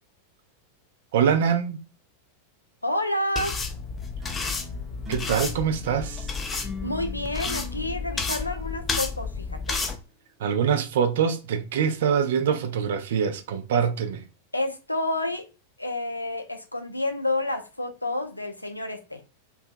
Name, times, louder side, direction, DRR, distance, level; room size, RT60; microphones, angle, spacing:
voice 1, 1.1-1.8 5.1-6.3 10.4-14.2, right 7 dB, 55° right, 0.4 m, -24 dB
voice 2, 2.8-3.6 6.8-9.8 13.7-13.8 14.5-15.5 15.8-19.2, left 1 dB, 85° left, 0.4 m, -29 dB
sound 1, 3.4-10.0, left 4 dB, 20° left, 0.4 m, -31 dB
sound 2, 4.2-9.8, left 2 dB, 10° right, 0.7 m, -44 dB
2.6 x 2.2 x 2.5 m
figure-of-eight pair, 90°, 0 cm